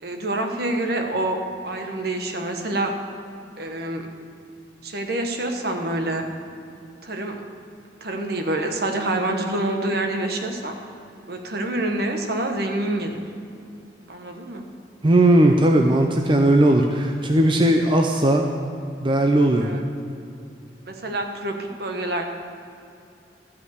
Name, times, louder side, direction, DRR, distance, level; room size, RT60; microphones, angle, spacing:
voice 1, 0.0-2.9 3.6-4.1 4.8-6.3 7.0-7.4 8.0-10.7 11.3-13.2 14.1-14.7 19.6-19.8 20.9-22.2, right 1 dB, 60° right, 4 dB, 1.3 m, -27 dB
voice 2, 15.0-18.4 19.0-19.7, right 1 dB, 30° right, 3 dB, 0.6 m, -17 dB
13.0 x 5.8 x 8.0 m, 2.6 s
head